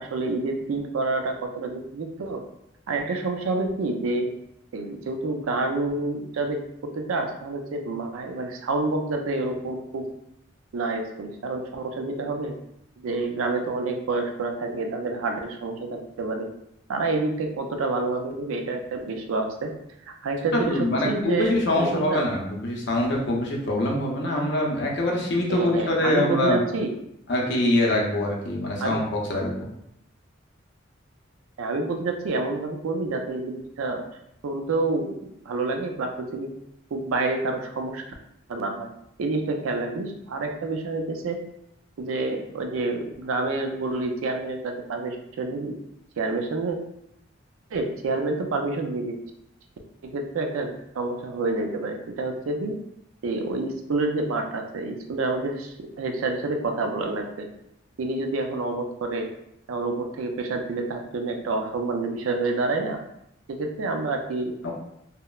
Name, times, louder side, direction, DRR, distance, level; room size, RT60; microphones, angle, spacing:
voice 1, 0.0-2.4 2.9-4.3 4.7-6.6 6.9-10.1 10.7-12.5 13.0-16.5 16.9-19.7 20.1-22.2 25.5-26.9 28.8-29.0 31.6-34.1 34.4-36.5 36.9-38.0 38.5-38.9 39.2-41.4 42.0-45.8 46.2-46.8 47.7-49.2 50.0-52.7 53.2-57.5 58.0-59.3 59.7-63.0 63.5-64.7, right 3 dB, 90° right, 4 dB, 0.4 m, -28 dB
voice 2, 20.5-26.6 27.3-29.7 64.6-64.7, left 1 dB, 60° left, -1 dB, 0.6 m, -24 dB
3.0 x 2.0 x 2.3 m, 0.79 s
head